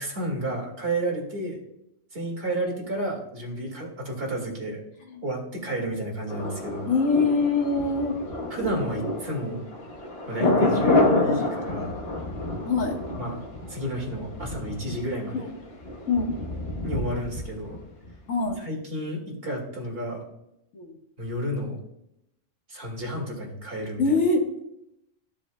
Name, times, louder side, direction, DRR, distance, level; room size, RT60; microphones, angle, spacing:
voice 1, 0.0-1.6 2.1-4.8 5.2-6.9 8.5-9.6 10.3-11.9 13.2-13.4 13.7-15.5 16.8-17.8 18.6-20.2 21.2-21.8 22.7-24.2, right 1 dB, 50° right, -1 dB, 2.4 m, -31 dB
Thunder, 6.3-18.2 18.5-18.6, left 2 dB, 50° left, 1.4 m, -28 dB
voice 2, 6.8-8.2 12.7-13.0 15.3-15.5 16.1-16.3 18.3-18.6 20.7-21.0 24.0-24.5, left 4 dB, 80° left, 2 dB, 1.8 m, -24 dB
14.5 x 7.3 x 2.2 m, 0.83 s
omnidirectional pair, 1.3 m